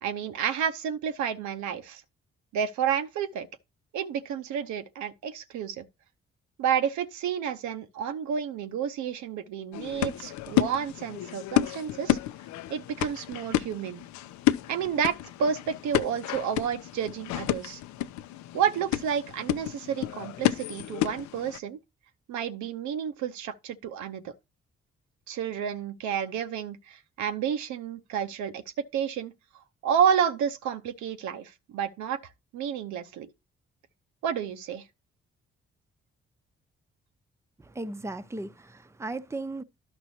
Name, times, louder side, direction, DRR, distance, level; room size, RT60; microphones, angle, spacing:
voice 1, 0.0-2.0 2.5-3.5 3.9-5.8 6.6-12.2 12.7-14.0 14.7-17.8 18.5-21.8 22.3-24.3 25.3-28.6 28.9-29.3 29.8-32.2 32.5-33.3 34.2-34.8, right 8 dB, 75° right, 0.8 m, -30 dB
sound 1, 9.7-21.6, left 14 dB, 70° left, 0.5 m, -31 dB
voice 2, 37.6-39.6, right 2 dB, 10° right, 0.7 m, -36 dB
11.5 x 6.0 x 2.8 m
hypercardioid pair, 45°, 29 cm